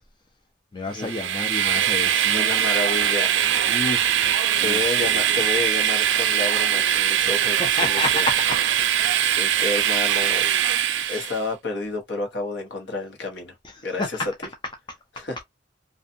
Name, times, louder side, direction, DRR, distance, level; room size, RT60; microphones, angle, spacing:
voice 1, 0.7-2.5 3.7-5.4 7.6-8.6 11.0-11.2 13.6-14.3, left 2 dB, 25° left, 0.4 m, -31 dB
Train, 1.0-11.4, right 10 dB, 70° right, 0.4 m, -22 dB
voice 2, 2.3-3.5 4.6-8.3 9.2-10.5 11.1-13.5 13.8-14.2 15.2-15.4, left 3 dB, 70° left, 0.9 m, -30 dB
2.6 x 2.4 x 2.5 m
head